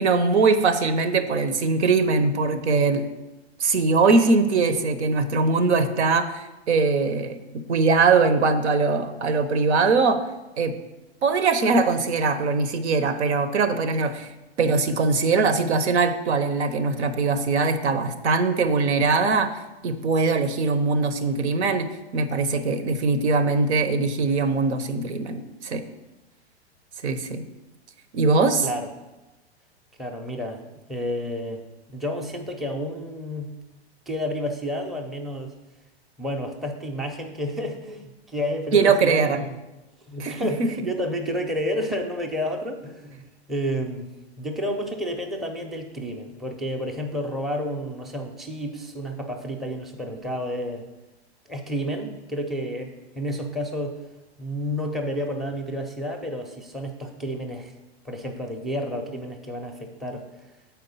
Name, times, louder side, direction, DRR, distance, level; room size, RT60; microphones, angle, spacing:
voice 1, 0.0-3.1 3.6-10.2 10.6-10.7 11.2-14.3 14.6-21.9 22.1-25.8 27.0-27.4 28.1-28.7 38.7-39.4 40.2-40.7, right 4 dB, 85° right, 10 dB, 0.9 m, -21 dB
voice 2, 30.0-30.6 30.9-31.6 31.9-33.5 34.1-35.5 36.2-39.6 40.1-44.1 44.4-50.9 51.5-54.0 54.4-57.7 58.0-60.2, equal, ahead, 3 dB, 0.5 m, -30 dB
7.6 x 4.4 x 5.5 m, 1.0 s
hypercardioid pair, 130°, 33 cm